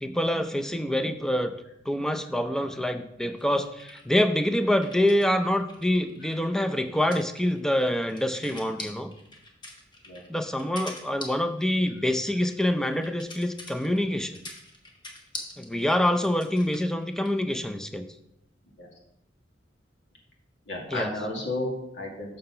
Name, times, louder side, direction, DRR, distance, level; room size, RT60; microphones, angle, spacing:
voice 1, 0.0-1.5 1.9-9.1 10.3-14.4 15.6-18.0 20.9-21.1, left 1 dB, 5° left, 7 dB, 0.5 m, -26 dB
sound 1, 3.4-5.3 5.6-17.4, left 1 dB, 25° left, 1.3 m, -44 dB
voice 2, 20.7-22.4, left 1 dB, 80° left, -1 dB, 2.1 m, -32 dB
6.6 x 5.7 x 5.7 m, 0.80 s
head